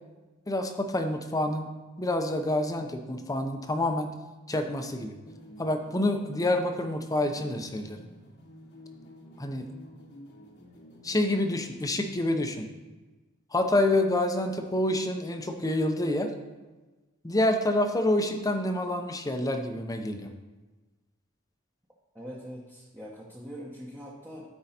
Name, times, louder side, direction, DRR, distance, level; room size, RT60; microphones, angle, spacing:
voice 1, 0.5-1.7 2.0-4.1 4.5-5.2 5.6-8.0 9.4-9.7 11.0-12.7 13.5-16.3 17.2-20.3, left 1 dB, 15° left, 5 dB, 0.7 m, -27 dB
sound 1, 5.2-12.0, equal, 55° left, 1.2 m, -51 dB
voice 2, 22.1-24.5, equal, 10° right, -5 dB, 1.0 m, -42 dB
13.0 x 4.7 x 4.3 m, 1.2 s
head